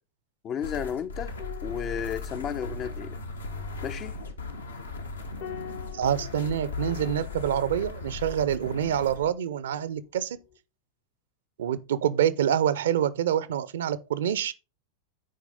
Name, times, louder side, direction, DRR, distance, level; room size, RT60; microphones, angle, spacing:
voice 1, 0.4-1.4 1.6-3.2 3.8-4.2, left 8 dB, 30° left, 0.5 m, -33 dB
sound 1, 0.6-9.3, left 3 dB, 75° left, 1.1 m, -37 dB
sound 2, 1.3-10.1 10.4-10.6, left 8 dB, 45° left, 0.9 m, -48 dB
voice 2, 5.9-10.4 11.6-14.5, right 9 dB, 60° right, 0.6 m, -26 dB
10.0 x 4.7 x 3.8 m
figure-of-eight pair, 90°, 0 cm